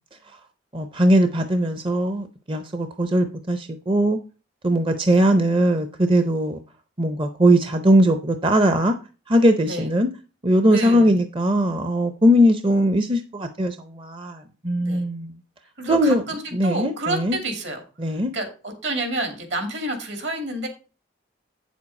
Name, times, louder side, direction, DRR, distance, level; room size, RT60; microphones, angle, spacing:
voice 1, 0.7-4.2 4.6-6.6 7.0-8.9 9.3-10.1 10.4-15.3 15.9-16.2 16.5-17.4 18.0-18.3, equal, 25° right, 0.6 m, -20 dB
voice 2, 10.7-11.2 14.8-15.0 15.8-17.8 18.3-20.7, right 1 dB, 70° right, 2.7 m, -29 dB
8.8 x 7.3 x 4.2 m
head